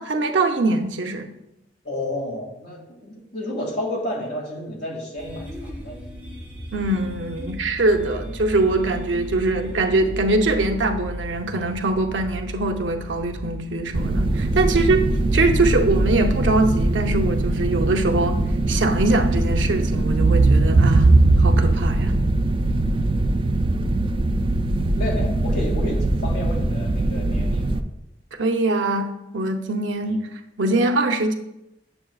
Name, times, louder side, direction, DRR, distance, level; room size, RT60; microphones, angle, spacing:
voice 1, 0.0-1.3 6.7-15.0 15.3-18.4 18.7-21.1 21.4-22.2 28.4-30.2 30.6-31.3, right 2 dB, 70° right, 4 dB, 0.7 m, -22 dB
voice 2, 1.8-6.0 14.7-14.9 25.0-27.8 30.0-30.2, left 1 dB, 60° left, -2 dB, 2.2 m, -31 dB
sound 1, 5.2-18.1, equal, 10° right, 1.0 m, -36 dB
sound 2, 13.9-27.8, right 2 dB, 30° right, 0.3 m, -20 dB
8.8 x 6.7 x 2.4 m, 0.89 s
head